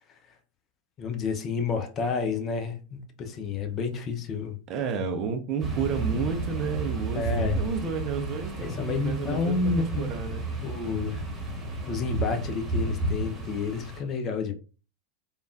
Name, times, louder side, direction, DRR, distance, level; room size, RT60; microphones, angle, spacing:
voice 1, 1.0-4.6 7.2-7.6 8.6-10.1 10.6-11.2 11.9-14.5, left 4 dB, 30° left, 0.5 m, -30 dB
voice 2, 4.7-10.4, right 6 dB, 35° right, 0.5 m, -31 dB
sound 1, 5.6-14.0, right 2 dB, 20° right, 1.0 m, -32 dB
3.3 x 2.2 x 2.5 m
figure-of-eight pair, 90°, 0 cm